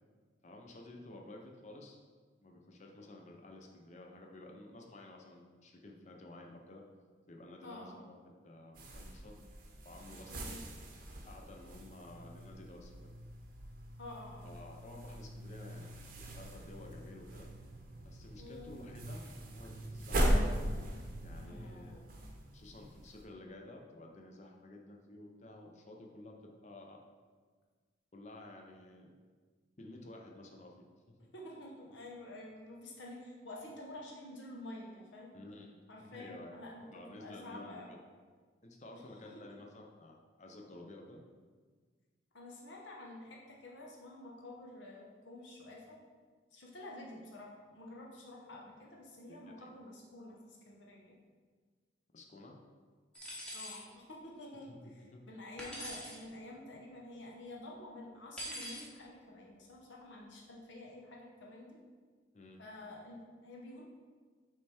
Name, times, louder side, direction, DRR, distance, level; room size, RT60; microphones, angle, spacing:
voice 1, 0.4-2.0 2.4-6.8 7.3-8.1 8.4-9.4 9.8-10.6 11.2-13.1 14.4-17.5 18.0-20.4 21.2-22.0 22.5-27.0 28.1-29.1 29.8-30.9 35.3-36.6 36.9-37.8 38.6-41.2 49.3-49.7 52.1-52.6 54.7-54.8 55.1-55.2 62.3-62.6, left 2 dB, 35° left, 1 dB, 0.7 m, -52 dB
voice 2, 7.6-8.0 10.3-10.6 14.0-14.5 18.4-18.8 21.4-22.0 31.3-35.3 35.9-37.9 38.9-39.0 42.3-46.0 46.5-51.2 53.5-61.8 62.6-63.8, left 1 dB, 75° left, -2 dB, 0.9 m, -49 dB
sound 1, 8.7-23.2, equal, 45° right, 0.7 m, -39 dB
sound 2, 53.1-53.8 55.6-56.2 58.4-58.9, equal, 5° left, 1.0 m, -43 dB
6.5 x 3.4 x 4.3 m, 1.5 s
head